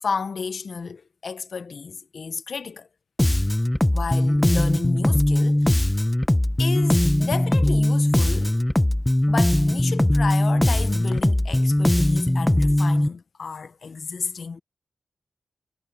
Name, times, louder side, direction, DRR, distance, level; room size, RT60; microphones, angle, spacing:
voice 1, 0.0-2.9 3.9-5.9 6.6-8.6 9.3-14.6, left 5 dB, 50° left, 0.9 m, -32 dB
Bass guitar, 3.2-13.1, left 1 dB, 10° left, 0.8 m, -20 dB
wide cardioid pair, 155°, 0 cm